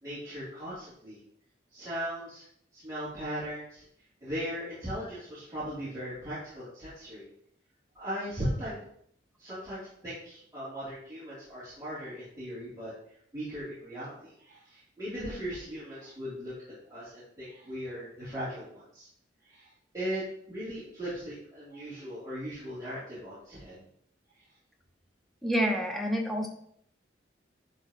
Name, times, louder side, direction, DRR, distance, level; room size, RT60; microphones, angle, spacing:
voice 1, 0.0-1.2 1.7-2.4 2.7-3.8 4.2-7.3 7.9-8.8 9.4-12.9 13.3-19.1 19.4-19.7 19.9-23.8, equal, 20° right, -13 dB, 3.2 m, -38 dB
voice 2, 25.4-26.5, equal, ahead, 1 dB, 1.0 m, -28 dB
10.5 x 4.8 x 3.0 m, 0.67 s
head